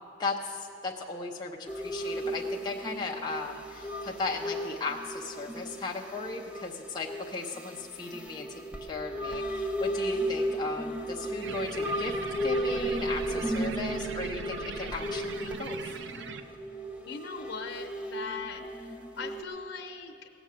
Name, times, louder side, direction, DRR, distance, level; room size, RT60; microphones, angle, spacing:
voice 1, 0.2-8.5 8.8-12.1 12.4-15.8, left 3 dB, 25° left, -2 dB, 0.7 m, -36 dB
sound 1, 1.7-19.4, right 1 dB, 5° right, 0.9 m, -35 dB
sound 2, 11.4-16.4, right 5 dB, 70° right, 0.6 m, -42 dB
voice 2, 17.1-20.3, left 5 dB, 90° left, 5 dB, 0.6 m, -40 dB
17.0 x 6.9 x 7.5 m, 2.7 s
head